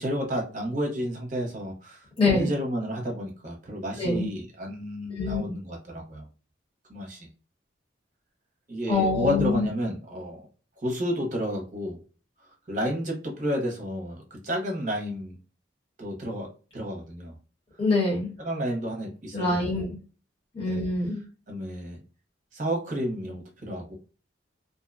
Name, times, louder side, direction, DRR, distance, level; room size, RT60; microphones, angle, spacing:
voice 1, 0.0-6.3 6.9-7.3 8.7-10.4 10.8-12.0 12.7-15.3 16.0-16.5 16.7-17.3 18.4-19.9 20.6-20.9 21.5-22.0 22.5-23.9, equal, 40° right, 0 dB, 0.7 m, -31 dB
voice 2, 2.2-2.5 4.0-4.3 5.1-5.4 8.9-9.7 17.8-18.3 19.3-19.9 20.5-21.2, left 3 dB, 30° left, -3 dB, 1.1 m, -24 dB
2.5 x 2.1 x 2.4 m, 0.36 s
head